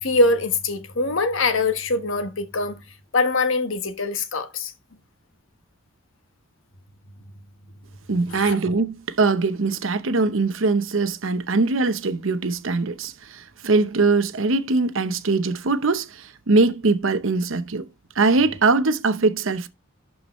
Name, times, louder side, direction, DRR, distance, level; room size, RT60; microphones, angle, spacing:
voice 1, 0.0-2.8 3.1-4.7 8.3-8.6, left 3 dB, 65° left, 1.3 m, -23 dB
voice 2, 8.1-17.9 18.2-19.7, right 3 dB, 65° right, 0.8 m, -22 dB
11.5 x 4.8 x 3.1 m
head